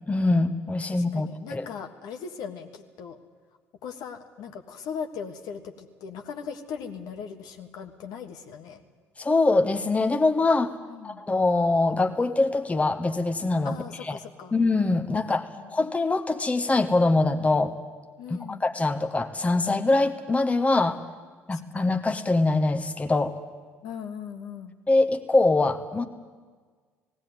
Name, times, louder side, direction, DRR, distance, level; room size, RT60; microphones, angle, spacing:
voice 1, 0.1-1.7 9.2-10.8 11.0-13.8 14.0-14.2 14.5-17.7 18.3-21.0 21.5-23.3 24.9-26.0, left 2 dB, 20° left, 7 dB, 1.3 m, -23 dB
voice 2, 0.9-3.2 3.8-8.8 10.9-11.2 13.6-14.5 15.1-15.2 15.6-15.9 18.2-18.6 21.5-21.6 23.8-24.8, left 7 dB, 60° left, 5 dB, 1.5 m, -39 dB
18.0 x 16.0 x 9.4 m, 1.5 s
hypercardioid pair, 55°, 7 cm